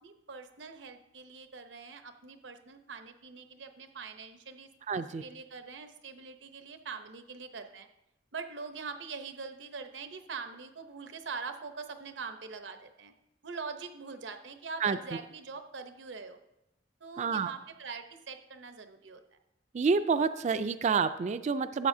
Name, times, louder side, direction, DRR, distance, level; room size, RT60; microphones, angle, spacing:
voice 1, 0.0-7.9 8.3-13.1 13.4-16.4 17.0-19.2, right 5 dB, 90° right, 8 dB, 0.8 m, -43 dB
voice 2, 4.9-5.2 14.8-15.0 17.2-17.5 19.7-21.9, right 5 dB, 40° right, 12 dB, 0.3 m, -28 dB
12.5 x 7.8 x 2.7 m, 0.88 s
head